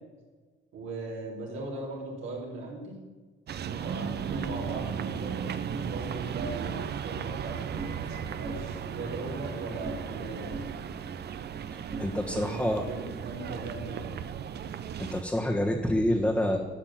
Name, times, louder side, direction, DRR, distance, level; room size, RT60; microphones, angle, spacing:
voice 1, 0.7-3.0 3.8-10.7 12.3-14.2, right 2 dB, 80° right, -3 dB, 4.0 m, -39 dB
sound 1, 3.5-15.2, right 8 dB, 55° right, 0.8 m, -36 dB
sound 2, 4.3-5.9 6.3-6.9 7.2-8.1 8.4-10.2 10.5-12.6, right 3 dB, 40° right, 2.4 m, -43 dB
voice 2, 11.7-12.9 15.0-16.6, left 1 dB, 5° left, -1 dB, 1.4 m, -27 dB
12.5 x 6.5 x 7.5 m, 1.4 s
cardioid pair, 90°, 20 cm